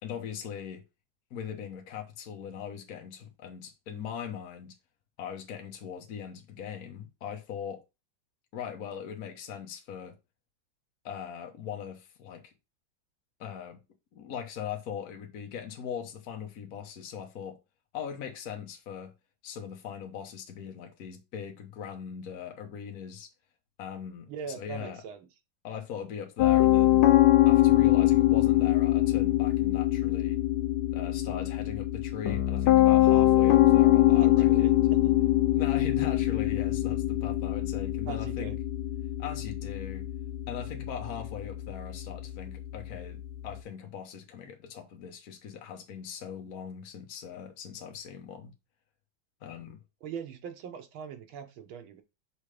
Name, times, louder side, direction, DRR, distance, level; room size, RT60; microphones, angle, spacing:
voice 1, 0.0-0.8 1.3-4.8 5.2-7.8 8.5-10.2 11.0-12.5 13.4-13.8 14.1-17.6 17.9-19.1 19.4-23.3 23.8-25.0 25.6-27.1 27.5-30.4 30.9-34.9 35.5-38.5 39.2-40.1 40.5-48.5 49.4-49.8, left 8 dB, 55° left, 1.3 m, -40 dB
voice 2, 24.3-25.3 34.1-35.2 38.1-38.6 50.0-52.0, right 7 dB, 85° right, 1.8 m, -41 dB
Piano, 26.4-43.5, left 15 dB, 75° left, 1.2 m, -24 dB
5.5 x 3.6 x 4.8 m
omnidirectional pair, 2.2 m